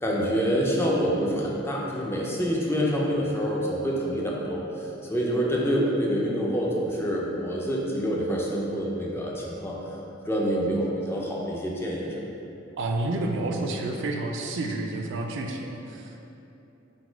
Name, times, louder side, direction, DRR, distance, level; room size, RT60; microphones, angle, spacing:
voice 1, 0.0-9.8 10.3-12.1, equal, 10° left, -4 dB, 0.4 m, -26 dB
voice 2, 12.8-16.3, right 2 dB, 60° right, 2 dB, 0.4 m, -30 dB
4.0 x 2.2 x 4.4 m, 2.9 s
head